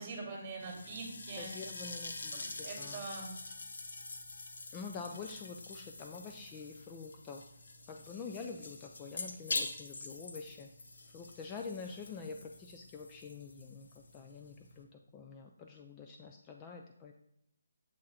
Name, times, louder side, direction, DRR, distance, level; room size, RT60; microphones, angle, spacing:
voice 1, 0.0-1.5 2.4-3.3, right 3 dB, 25° right, 0 dB, 2.3 m, -43 dB
sound 1, 0.6-14.8, left 3 dB, 65° left, 1.1 m, -45 dB
voice 2, 1.4-3.1 4.7-7.4 7.9-10.7 11.1-17.1, left 5 dB, 15° left, 3 dB, 0.4 m, -46 dB
7.6 x 3.7 x 4.2 m, 0.80 s
figure-of-eight pair, 160°, 0 cm